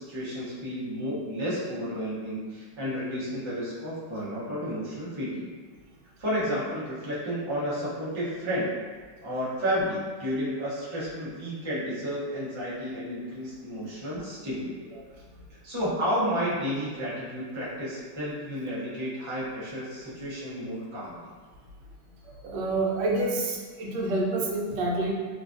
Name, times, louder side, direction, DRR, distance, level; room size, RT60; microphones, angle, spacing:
voice 1, 0.0-5.5 6.2-8.7 9.2-14.7 15.6-21.2, equal, 50° right, -10 dB, 0.3 m, -31 dB
voice 2, 22.2-25.1, right 2 dB, 80° right, -2 dB, 1.2 m, -28 dB
3.1 x 2.3 x 2.5 m, 1.5 s
omnidirectional pair, 1.9 m